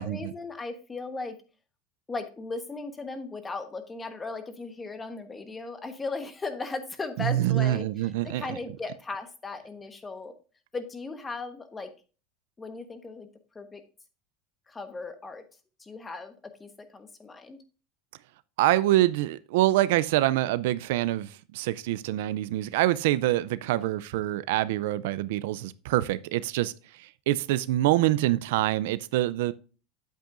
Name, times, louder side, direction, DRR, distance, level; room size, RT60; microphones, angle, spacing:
voice 1, 0.0-1.3 2.1-10.3 10.7-11.9 12.6-13.3 13.5-13.8 14.7-15.4 15.8-16.3 16.6-17.6 23.7-23.9, left 3 dB, 15° left, 1.2 m, -37 dB
voice 2, 7.2-8.6 18.6-29.5, right 15 dB, 80° right, 0.4 m, -25 dB
8.9 x 8.0 x 2.5 m
supercardioid pair, 120°, 0 cm